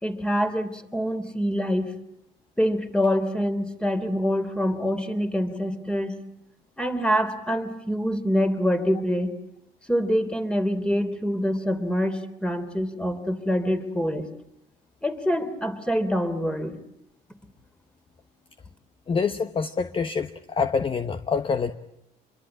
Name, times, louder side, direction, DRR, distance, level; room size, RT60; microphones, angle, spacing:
voice 1, 0.0-1.9 2.6-6.2 6.8-9.3 9.9-14.3 15.0-16.7, equal, 5° left, 9 dB, 3.3 m, -25 dB
voice 2, 19.1-21.7, left 5 dB, 30° left, 10 dB, 1.1 m, -26 dB
26.5 x 23.5 x 9.0 m, 0.79 s
cardioid pair, 110°, 17 cm